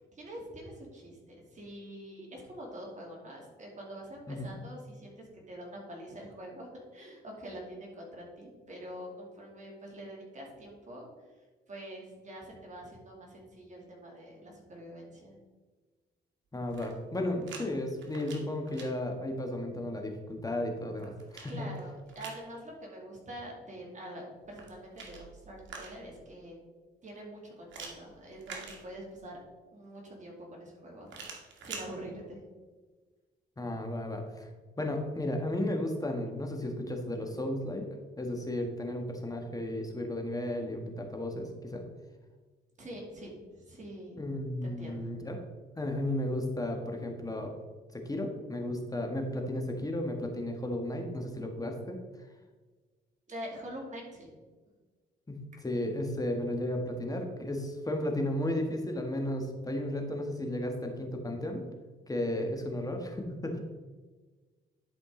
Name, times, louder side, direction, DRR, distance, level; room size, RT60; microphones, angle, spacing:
voice 1, 0.1-11.1 11.7-15.3 21.5-26.6 27.0-29.4 29.7-31.1 31.6-32.4 42.8-44.2 44.6-45.1 53.3-54.3, right 1 dB, 40° right, -2 dB, 2.7 m, -45 dB
voice 2, 16.5-21.8 33.6-34.5 34.8-37.9 38.2-41.8 44.2-45.4 45.8-47.5 47.9-52.0 55.3-61.6 62.1-63.6, left 1 dB, 20° left, 3 dB, 1.5 m, -34 dB
sound 1, 16.6-17.6 18.0-18.9 20.6-22.5 24.4-26.2 27.7-29.3 31.1-31.9, right 5 dB, 70° right, 1.9 m, -46 dB
11.0 x 5.2 x 3.8 m, 1.3 s
cardioid pair, 90°, 20 cm